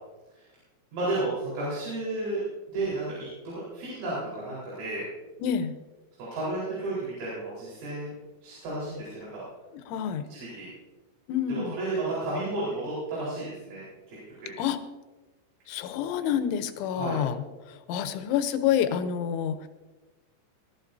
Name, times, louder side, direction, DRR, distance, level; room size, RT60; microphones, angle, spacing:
voice 1, 0.9-2.4 2.7-3.1 3.5-5.0 6.3-8.1 8.4-9.4 10.3-10.7 11.6-13.8 14.1-14.5 16.9-17.2, right 2 dB, 85° right, -8 dB, 6.9 m, -32 dB
voice 2, 5.4-5.8 9.7-10.3 11.3-11.7 14.6-14.8 15.7-19.7, left 9 dB, 80° left, 10 dB, 3.2 m, -28 dB
21.5 x 13.0 x 2.7 m, 1.2 s
omnidirectional pair, 5.6 m